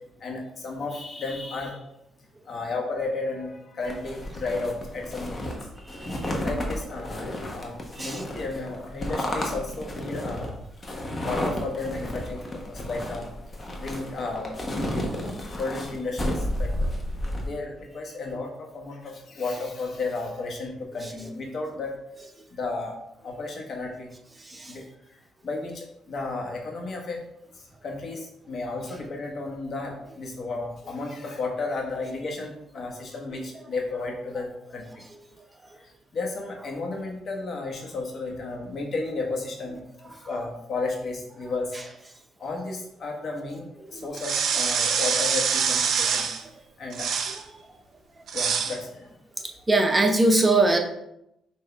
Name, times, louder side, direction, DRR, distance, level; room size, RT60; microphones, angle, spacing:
voice 1, 0.2-1.8 2.5-5.6 6.4-10.5 11.2-12.4 12.7-13.3 13.8-14.5 15.6-16.7 17.4-22.0 22.5-23.0 23.2-24.1 24.7-24.8 25.4-27.2 27.8-34.9 36.1-39.8 40.3-41.7 42.4-43.7 43.9-46.3 46.8-47.1 48.3-49.0, left 3 dB, 50° left, 0 dB, 1.2 m, -33 dB
sound 1, 3.9-17.5, left 1 dB, 30° left, 1.0 m, -32 dB
voice 2, 5.9-6.4 8.0-8.2 24.5-24.7 49.7-50.8, right 2 dB, 20° right, 4 dB, 0.6 m, -21 dB
sound 2, 44.1-46.4 46.9-47.4 48.3-48.8, right 6 dB, 65° right, 0.5 m, -25 dB
5.9 x 2.6 x 3.4 m, 0.81 s
cardioid pair, 90°, 0 cm